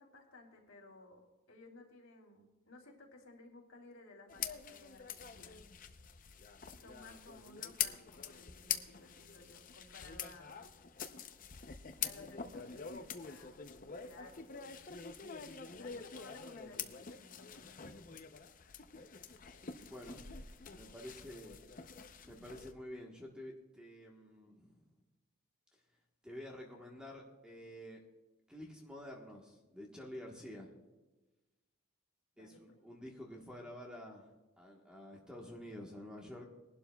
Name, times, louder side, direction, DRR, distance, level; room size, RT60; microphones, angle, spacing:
voice 1, 0.0-5.6 6.7-10.6 12.0-14.9 15.8-17.8 32.3-32.8, left 2 dB, 70° left, 0 dB, 3.1 m, -57 dB
sound 1, 4.3-22.7, left 8 dB, 40° left, 0.6 m, -45 dB
voice 2, 19.9-20.2 20.7-21.6 22.2-24.9 26.2-28.0 28.5-30.7 32.4-34.3 34.6-36.5, left 1 dB, 5° right, 0 dB, 1.2 m, -49 dB
21.5 x 11.5 x 2.3 m, 1.1 s
head